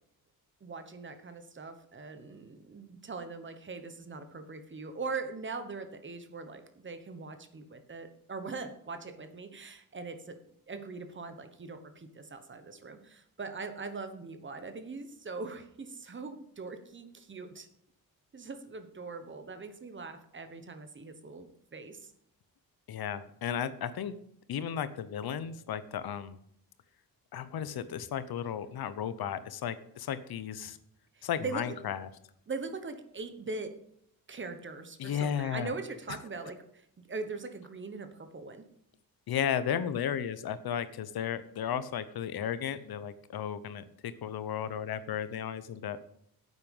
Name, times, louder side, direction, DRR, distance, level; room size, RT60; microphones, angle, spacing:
voice 1, 0.6-10.4 10.7-17.7 18.3-22.1 31.1-31.7 32.5-33.8 34.3-38.7, right 4 dB, 30° right, 9 dB, 1.2 m, -41 dB
voice 2, 22.9-24.1 24.5-26.4 27.3-30.8 31.2-32.1 35.0-35.7 39.3-46.0, left 8 dB, 80° left, 14 dB, 0.9 m, -34 dB
9.7 x 8.2 x 5.4 m, 0.73 s
wide cardioid pair, 165°, 36 cm